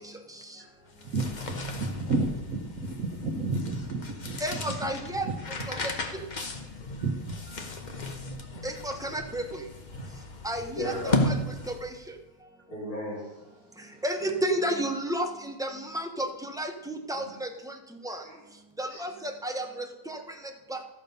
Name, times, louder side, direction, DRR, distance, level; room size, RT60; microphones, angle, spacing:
sound 1, 0.9-12.1, left 2 dB, 35° left, 0.9 m, -35 dB
voice 1, 1.0-4.9 5.2-5.4 5.8-5.9 7.0-8.7 9.9-10.2 11.2-11.4 13.9-14.0, right 3 dB, 65° right, -2 dB, 1.5 m, -33 dB
voice 2, 4.4-5.3 5.7-5.8 8.6-9.4 10.4-11.3 11.7-11.8 14.0-17.5 18.0-18.2 18.8-20.2 20.7-20.8, right 1 dB, 5° right, 3 dB, 0.5 m, -31 dB
voice 3, 10.7-11.2 12.7-13.9 17.1-17.3 18.2-18.4 18.9-19.0 19.6-19.7, equal, 75° left, -11 dB, 5.0 m, -36 dB
13.5 x 7.0 x 5.3 m, 1.0 s
omnidirectional pair, 1.6 m